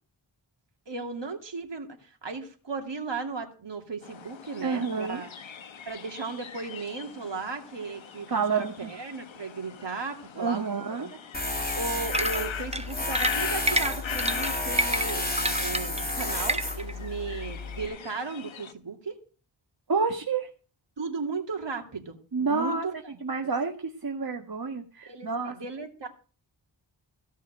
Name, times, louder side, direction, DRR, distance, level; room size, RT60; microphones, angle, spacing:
voice 1, 0.9-5.3 5.9-11.2 11.7-19.2 21.0-22.9 25.1-26.1, right 4 dB, 65° right, 4 dB, 2.6 m, -36 dB
sound 1, 4.0-18.7, left 7 dB, 80° left, 1.1 m, -41 dB
voice 2, 4.6-5.2 8.3-8.9 10.3-11.1 19.9-20.5 22.3-22.8 23.2-25.5, right 4 dB, 50° right, 5 dB, 1.6 m, -29 dB
Tools, 11.3-17.9, left 2 dB, 20° left, 3.4 m, -31 dB
sound 2, 12.1-16.9, right 1 dB, 15° right, 0.8 m, -29 dB
16.5 x 5.6 x 9.0 m, 0.38 s
wide cardioid pair, 95°, 46 cm